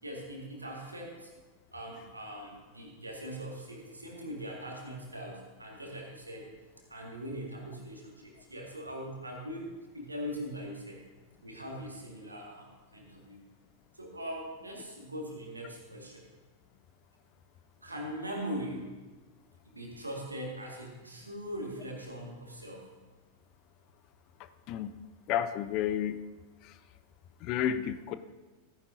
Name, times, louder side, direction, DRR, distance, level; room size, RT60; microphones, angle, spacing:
voice 1, 0.0-1.3 1.7-6.5 6.9-11.0 11.4-13.4 13.9-16.2 17.8-19.0 19.6-22.9, equal, 80° right, 0 dB, 2.0 m, -41 dB
voice 2, 25.3-26.2 26.6-26.7 27.4-28.1, left 10 dB, 40° left, 12 dB, 0.5 m, -31 dB
14.5 x 9.8 x 2.7 m, 1.2 s
figure-of-eight pair, 90°, 0 cm